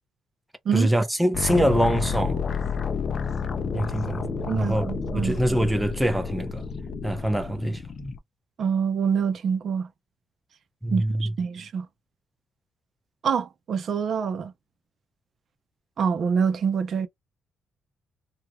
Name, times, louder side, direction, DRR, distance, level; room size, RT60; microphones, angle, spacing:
voice 1, 0.7-2.4 3.7-6.7 7.0-8.1 10.8-11.3, equal, 5° right, 0.7 m, -24 dB
sound 1, 1.3-8.2, left 5 dB, 40° left, 0.5 m, -30 dB
voice 2, 4.5-5.4 8.6-9.9 10.9-11.9 13.2-14.5 16.0-17.1, right 6 dB, 50° right, 0.7 m, -26 dB
3.0 x 2.4 x 2.3 m
cardioid pair, 135°, 0 cm